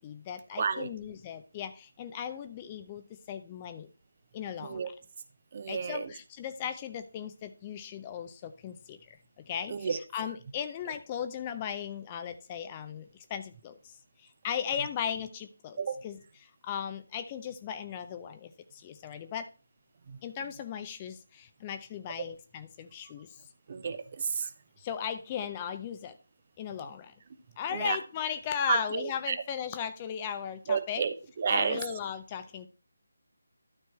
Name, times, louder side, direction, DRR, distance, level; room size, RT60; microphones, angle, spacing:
voice 1, 0.0-3.9 4.3-4.9 5.7-9.0 9.4-13.8 14.4-16.2 16.6-19.5 20.2-23.3 24.8-26.2 26.6-27.1 27.6-31.0 31.5-32.7, left 8 dB, 20° left, 9 dB, 0.5 m, -37 dB
voice 2, 0.6-0.9 4.6-4.9 5.5-6.1 9.7-10.0 15.8-16.0 20.1-20.2 23.7-24.5 27.7-28.0 28.7-29.4 30.7-31.8, right 6 dB, 35° right, 12 dB, 0.8 m, -31 dB
12.0 x 4.5 x 4.4 m, 0.34 s
figure-of-eight pair, 155°, 0 cm